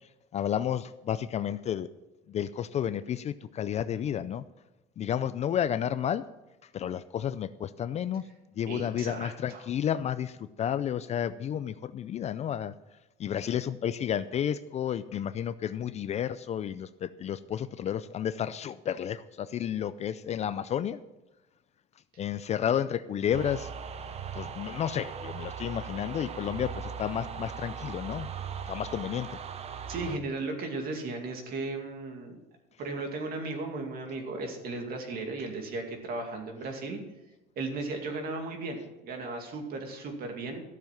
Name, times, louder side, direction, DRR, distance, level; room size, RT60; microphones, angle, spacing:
voice 1, 0.3-1.9 2.3-4.4 5.0-6.2 6.7-8.2 8.6-12.7 13.2-21.0 22.2-23.7 24.3-28.3 28.7-29.4, left 9 dB, 35° left, 14 dB, 0.4 m, -31 dB
voice 2, 8.7-9.6 29.9-32.4 32.8-37.0 37.6-40.6, right 3 dB, 50° right, 3 dB, 2.5 m, -36 dB
sound 1, 23.3-30.2, right 6 dB, 30° right, 0.8 m, -39 dB
13.5 x 7.1 x 6.0 m, 1.0 s
cardioid pair, 135°, 20 cm